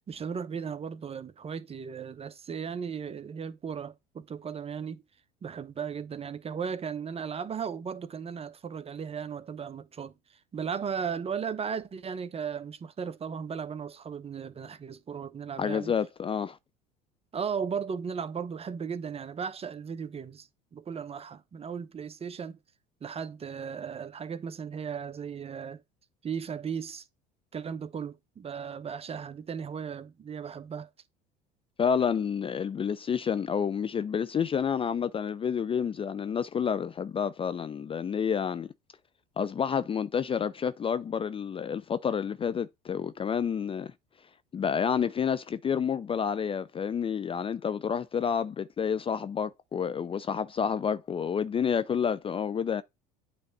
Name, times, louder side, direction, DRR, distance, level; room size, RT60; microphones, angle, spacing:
voice 1, 0.0-5.0 5.4-10.1 10.5-15.9 17.3-22.6 23.0-25.8 26.2-27.0 27.5-30.9, right 6 dB, 30° right, 0.8 m, -36 dB
voice 2, 15.6-16.6 31.8-38.7 39.4-43.9 44.5-52.8, left 7 dB, 25° left, 0.5 m, -29 dB
8.9 x 3.2 x 4.0 m
hypercardioid pair, 70°, 21 cm